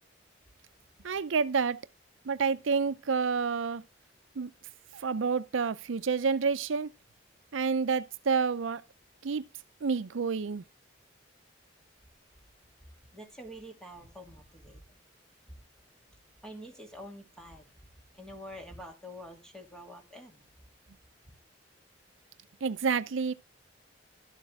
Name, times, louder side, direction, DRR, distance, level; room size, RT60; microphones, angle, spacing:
voice 1, 1.0-1.8 2.3-3.8 4.4-4.5 4.9-6.9 7.5-8.8 9.2-9.4 9.8-10.6 22.6-23.3, right 5 dB, 80° right, 0.5 m, -29 dB
voice 2, 13.1-15.0 15.5-15.6 16.4-20.4, equal, 5° left, 2.6 m, -47 dB
12.5 x 7.4 x 3.5 m
head